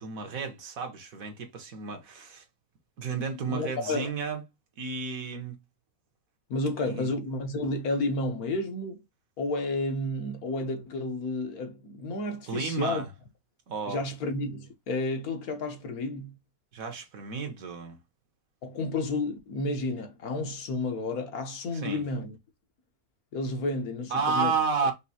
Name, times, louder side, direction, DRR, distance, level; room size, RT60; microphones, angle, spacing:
voice 1, 0.0-2.4 3.0-4.4 4.8-5.6 6.8-7.1 12.5-13.1 13.7-14.0 16.7-18.0 21.7-22.0 24.1-24.9, right 5 dB, 65° right, 1.4 m, -32 dB
voice 2, 3.5-4.1 6.5-9.0 9.4-13.0 13.9-16.4 18.6-22.3 23.3-24.5 24.8-24.9, left 2 dB, 75° left, 1.5 m, -31 dB
5.3 x 2.6 x 2.7 m
omnidirectional pair, 1.6 m